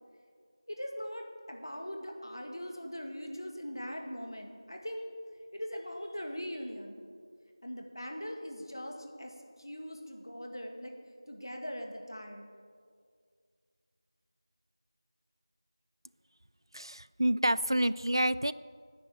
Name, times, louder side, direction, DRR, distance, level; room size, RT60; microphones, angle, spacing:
voice 1, 0.7-5.1 5.5-7.0 7.6-10.9 11.3-12.5, equal, 50° left, 2 dB, 2.0 m, -41 dB
voice 2, 16.7-18.5, right 1 dB, 60° right, 17 dB, 0.4 m, -28 dB
10.5 x 9.8 x 8.3 m, 2.1 s
figure-of-eight pair, 175°, 3 cm